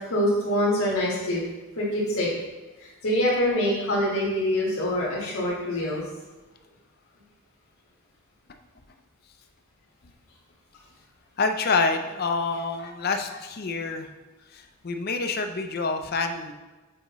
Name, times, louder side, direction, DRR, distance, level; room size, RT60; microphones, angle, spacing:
voice 1, 0.0-1.4 1.7-2.3 2.8-6.0, left 1 dB, 80° left, -6 dB, 1.6 m, -25 dB
voice 2, 11.4-14.1 14.5-16.5, left 4 dB, 45° left, 6 dB, 0.5 m, -27 dB
7.7 x 5.0 x 3.1 m, 1.2 s
head